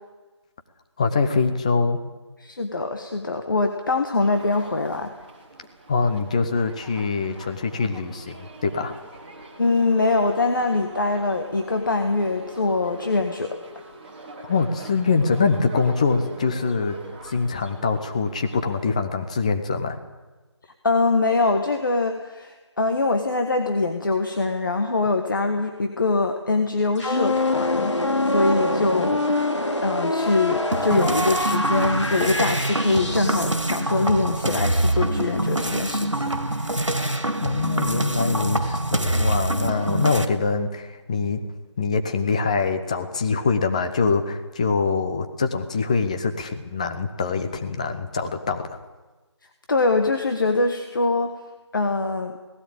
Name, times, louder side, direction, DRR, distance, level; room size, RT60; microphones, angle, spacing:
voice 1, 1.0-2.0 5.9-8.9 14.4-17.0 17.2-20.0 37.4-41.4 41.8-48.7, left 4 dB, 15° left, 7 dB, 0.8 m, -24 dB
voice 2, 2.4-5.1 9.6-13.6 20.8-29.3 29.8-36.9 49.7-51.3 51.7-52.4, left 3 dB, 45° left, 5 dB, 1.5 m, -23 dB
sound 1, 4.2-18.8, right 2 dB, 20° right, 2.9 m, -43 dB
sound 2, 27.0-33.7, left 2 dB, 75° left, 3.3 m, -25 dB
sound 3, 30.7-40.3, right 1 dB, 85° right, 2.1 m, -25 dB
18.5 x 17.0 x 8.8 m, 1.2 s
figure-of-eight pair, 160°, 15 cm